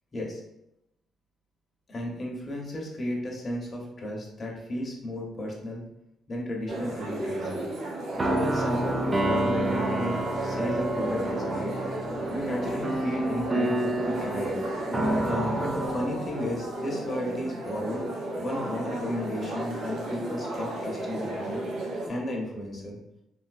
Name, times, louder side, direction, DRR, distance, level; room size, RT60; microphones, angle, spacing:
voice 1, 1.9-5.8 6.3-7.6 8.2-11.7 12.3-14.6 15.2-18.1 18.4-21.6 22.0-23.0, left 1 dB, 35° left, -1 dB, 0.9 m, -33 dB
sound 1, 6.7-22.1, right 1 dB, 85° right, 0.8 m, -33 dB
sound 2, 8.1-16.6, right 1 dB, 25° right, 0.4 m, -29 dB
3.4 x 2.6 x 2.5 m, 0.85 s
cardioid pair, 90°, 0 cm